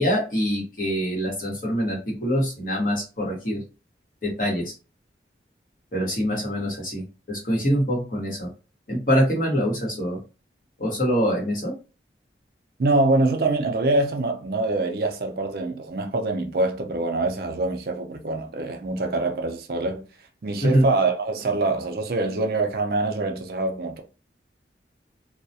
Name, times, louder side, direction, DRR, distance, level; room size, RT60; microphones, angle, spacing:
voice 1, 0.0-3.6 4.2-4.6 5.9-8.5 8.9-10.2 10.8-11.7 20.6-20.8, equal, 50° left, 1.0 m, -24 dB
voice 2, 12.8-20.0 20.4-24.0, right 2 dB, 55° right, 0.4 m, -24 dB
2.3 x 2.1 x 2.6 m
head